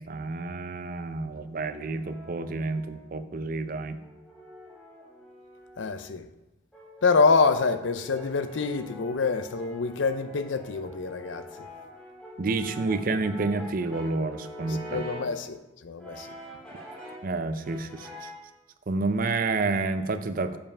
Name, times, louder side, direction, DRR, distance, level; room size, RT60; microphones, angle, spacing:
voice 1, 0.0-4.0 12.4-15.0 17.2-18.3 18.9-20.6, right 3 dB, 50° right, 0.5 m, -29 dB
Brass instrument, 1.3-3.3 4.0-6.1 6.7-15.4 16.0-17.3 17.6-18.5, equal, 5° left, 2.2 m, -45 dB
voice 2, 5.8-6.2 7.0-11.4 14.9-15.6 15.8-16.3, left 4 dB, 85° left, 0.6 m, -25 dB
6.9 x 5.4 x 5.5 m
head